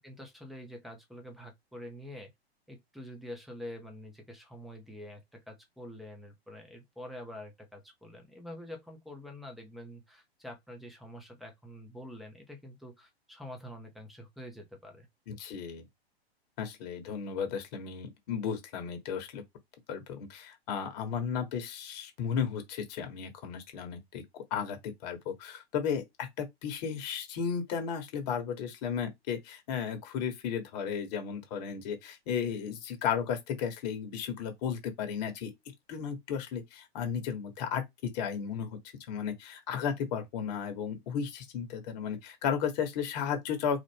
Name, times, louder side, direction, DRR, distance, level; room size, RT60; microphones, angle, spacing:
voice 1, 0.0-2.3 2.7-15.1, left 1 dB, ahead, 0.8 m, -46 dB
voice 2, 15.3-15.8 16.6-19.4 19.9-35.5 35.9-38.8 39.1-43.8, left 7 dB, 40° left, 1.3 m, -34 dB
4.0 x 2.5 x 3.4 m
figure-of-eight pair, 110°, 32 cm